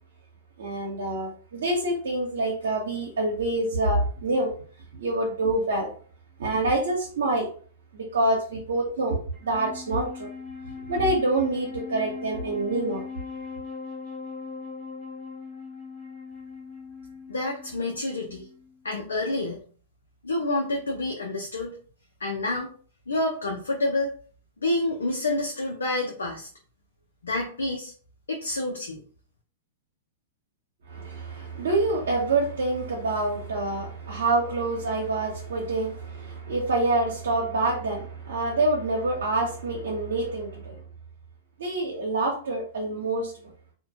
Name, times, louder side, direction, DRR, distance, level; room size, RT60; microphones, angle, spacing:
voice 1, 0.6-4.5 4.9-5.9 6.4-7.5 7.9-10.3 10.9-13.0 30.9-40.8 41.6-43.3, right 2 dB, 80° right, 0.6 m, -26 dB
Wind instrument woodwind instrument, 9.3-18.8, left 5 dB, 35° left, 0.9 m, -40 dB
voice 2, 17.3-18.5 18.8-19.6 20.2-21.7 22.2-22.7 23.1-24.1 24.6-26.5 27.2-27.9 28.3-29.0, left 2 dB, 85° left, 0.5 m, -28 dB
2.3 x 2.2 x 2.7 m
hypercardioid pair, 110°, 0 cm